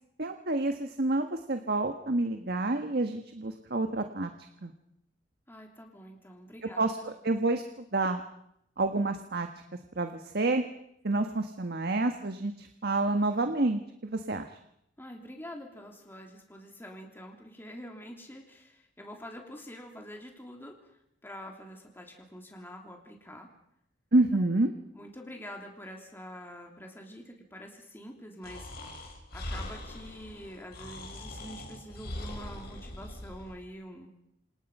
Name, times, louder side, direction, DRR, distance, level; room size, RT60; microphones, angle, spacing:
voice 1, 0.2-4.3 4.6-4.7 6.8-7.6 7.9-8.2 8.8-9.5 9.9-10.6 11.0-13.8 14.1-14.6 24.1-24.7, right 2 dB, 55° right, 6 dB, 1.5 m, -28 dB
voice 2, 5.5-7.1 15.0-20.9 21.2-23.5 24.3-24.5 24.9-28.9 29.3-34.1, equal, 10° left, 1 dB, 3.2 m, -46 dB
Breathing, 28.4-33.5, left 1 dB, 55° left, 6.5 m, -41 dB
27.5 x 27.5 x 5.6 m, 0.77 s
head